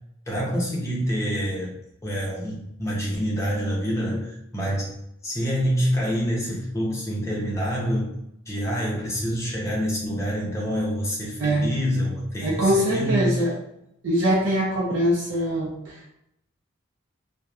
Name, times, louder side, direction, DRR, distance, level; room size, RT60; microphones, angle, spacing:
voice 1, 0.3-1.7 2.0-4.9 5.2-8.1 8.5-13.4, equal, 15° left, -4 dB, 0.6 m, -26 dB
voice 2, 12.4-13.5 14.0-16.1, equal, 70° right, -4 dB, 0.4 m, -23 dB
2.8 x 2.0 x 2.3 m, 0.79 s
head